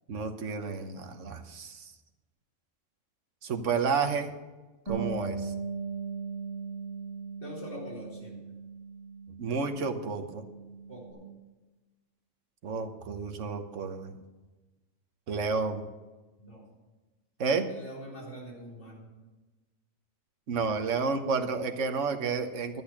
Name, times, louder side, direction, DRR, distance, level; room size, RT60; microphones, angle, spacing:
voice 1, 0.1-1.9 3.4-4.3 4.9-5.5 9.4-10.4 12.6-14.2 15.3-15.9 17.4-17.7 20.5-22.8, right 5 dB, 65° right, 6 dB, 1.3 m, -31 dB
Bass guitar, 4.9-11.1, right 4 dB, 20° left, 3.1 m, -39 dB
voice 2, 7.4-8.4 10.9-11.2 16.4-16.6 17.7-19.1, equal, 55° left, -4 dB, 4.3 m, -44 dB
12.5 x 8.6 x 5.9 m, 1.2 s
omnidirectional pair, 1.4 m